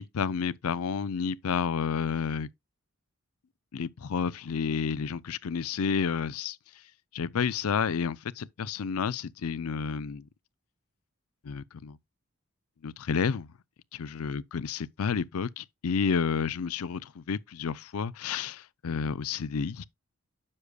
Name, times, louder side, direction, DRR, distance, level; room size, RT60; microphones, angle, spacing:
voice 1, 0.0-2.5 3.7-6.6 7.1-10.2 11.4-12.0 12.8-13.5 13.9-19.8, left 6 dB, 85° left, 0.5 m, -30 dB
9.8 x 6.6 x 2.3 m
head